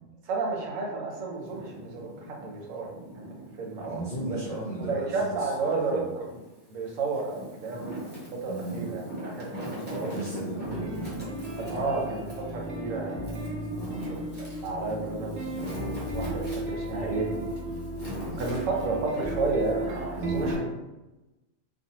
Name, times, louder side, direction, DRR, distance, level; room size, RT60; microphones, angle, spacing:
voice 1, 0.3-2.9 3.6-4.4 4.8-6.4 6.7-7.9 8.4-10.2 11.6-13.5 14.6-17.3 18.4-20.7, right 3 dB, 85° right, -1 dB, 1.0 m, -32 dB
Wind, 1.3-4.2 4.7-6.0 6.6-20.5, equal, 15° right, 0.4 m, -41 dB
voice 2, 3.9-6.1 8.5-8.9 10.1-11.2 13.8-14.0 18.3-18.4 20.2-20.5, right 1 dB, 60° left, -5 dB, 0.4 m, -36 dB
sound 1, 10.6-20.6, right 1 dB, 65° right, 0.8 m, -35 dB
2.5 x 2.2 x 2.8 m, 1.1 s
omnidirectional pair, 1.3 m